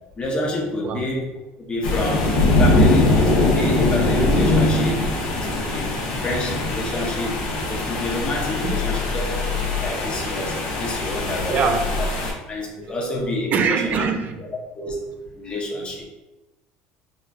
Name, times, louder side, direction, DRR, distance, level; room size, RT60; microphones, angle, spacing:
voice 1, 0.2-1.3 1.6-2.3 2.6-5.1 5.3-5.9 6.2-7.4 7.7-11.6 12.0-12.1 12.5-14.0 14.8-15.1 15.3-16.0, left 2 dB, 25° left, -1 dB, 0.8 m, -28 dB
sound 1, 1.8-12.3, left 2 dB, 80° left, 0.8 m, -21 dB
voice 2, 11.5-11.9 13.5-14.4, right 5 dB, 45° right, 7 dB, 0.4 m, -22 dB
3.8 x 2.3 x 2.3 m, 1.1 s
supercardioid pair, 110°, 4 cm